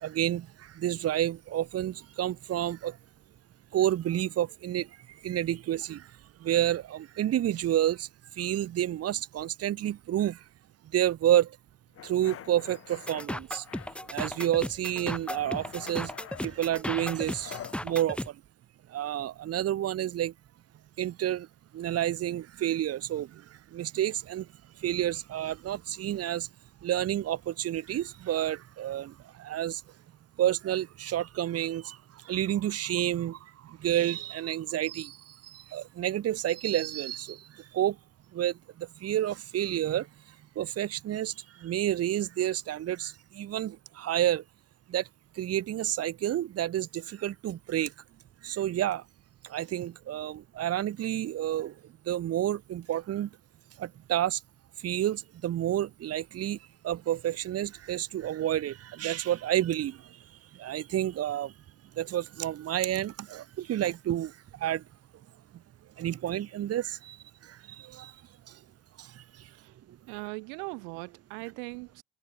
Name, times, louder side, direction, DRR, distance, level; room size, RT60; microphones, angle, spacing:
voice 1, 0.0-3.0 3.7-10.4 10.9-11.6 12.0-13.6 14.1-16.1 16.4-18.4 18.9-20.3 21.0-21.5 21.7-24.5 24.8-26.5 26.8-29.8 30.4-38.0 38.3-40.1 40.5-44.4 44.9-45.1 45.3-47.9 48.4-49.0 49.4-51.8 52.0-53.3 53.8-54.4 54.8-56.6 56.8-61.5 61.9-64.8 66.0-68.2 68.5-68.6 69.0-69.5 69.9-70.0, right 12 dB, 40° right, 1.7 m, -30 dB
sound 1, 11.9-13.3 13.6-14.6 14.8-17.8, left 11 dB, 35° left, 1.6 m, -46 dB
sound 2, 13.1-18.3, left 1 dB, 5° left, 2.6 m, -36 dB
voice 2, 70.1-72.0, right 40 dB or more, 80° right, 2.0 m, -39 dB
cardioid pair, 125°, 38 cm